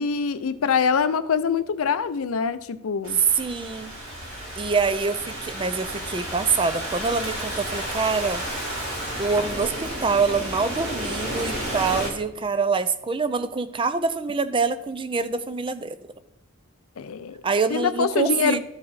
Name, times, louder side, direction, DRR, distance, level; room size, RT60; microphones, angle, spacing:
voice 1, 0.0-3.2 17.0-17.4 17.7-18.6, left 6 dB, 85° left, 13 dB, 0.5 m, -24 dB
Thunderstorm / Rain, 3.0-12.1, right 1 dB, 80° right, 2.7 m, -32 dB
voice 2, 3.3-3.9 4.6-8.4 9.2-16.0 17.4-18.6, right 4 dB, 25° right, 12 dB, 0.4 m, -25 dB
13.5 x 4.8 x 4.1 m, 0.89 s
head